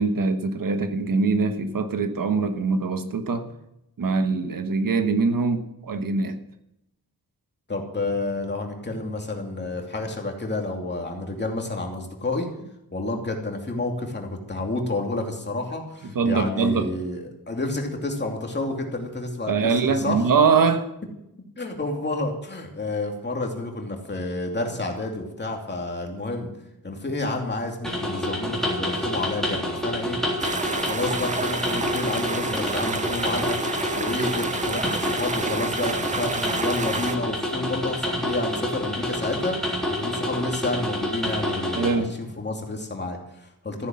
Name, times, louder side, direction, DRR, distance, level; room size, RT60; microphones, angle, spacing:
voice 1, 0.0-3.5 4.0-6.4 16.1-16.9 19.5-20.9 41.7-42.2, right 4 dB, 65° right, 1.3 m, -23 dB
voice 2, 7.7-12.5 12.9-20.2 21.6-26.5 26.8-30.2 30.8-33.6 34.0-43.9, left 2 dB, 30° left, 2.7 m, -30 dB
sound 1, 27.8-41.9, left 1 dB, ahead, 3.6 m, -28 dB
sound 2, 30.4-37.2, right 4 dB, 20° right, 0.5 m, -30 dB
14.5 x 9.8 x 7.6 m
wide cardioid pair, 165°, 36 cm